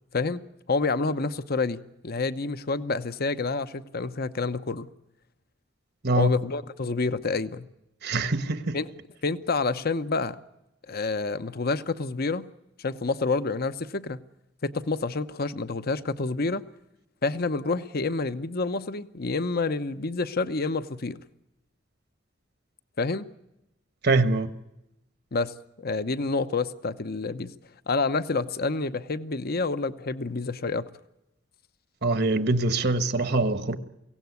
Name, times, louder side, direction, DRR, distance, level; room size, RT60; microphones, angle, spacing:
voice 1, 0.7-4.9 6.2-7.7 8.7-8.9 9.2-10.4 10.9-12.5 12.8-14.2 14.6-16.6 17.2-21.2 23.0-23.3 25.3-27.5 27.9-30.9, left 3 dB, 55° left, 0.9 m, -28 dB
voice 2, 8.0-8.8 24.0-24.5 32.0-33.8, right 2 dB, 55° right, 1.4 m, -24 dB
24.0 x 17.0 x 9.5 m
head